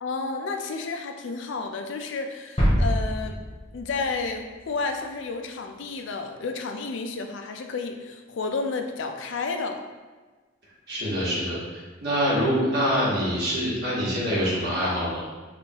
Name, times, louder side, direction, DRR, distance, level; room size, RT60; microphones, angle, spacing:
voice 1, 0.0-3.4 3.7-9.8, left 4 dB, 80° left, 5 dB, 0.4 m, -31 dB
sound 1, 2.6-4.4 4.7-4.8, equal, 25° left, 0.9 m, -25 dB
voice 2, 10.9-15.2, equal, 55° right, -8 dB, 1.5 m, -25 dB
5.4 x 2.5 x 2.9 m, 1.3 s
head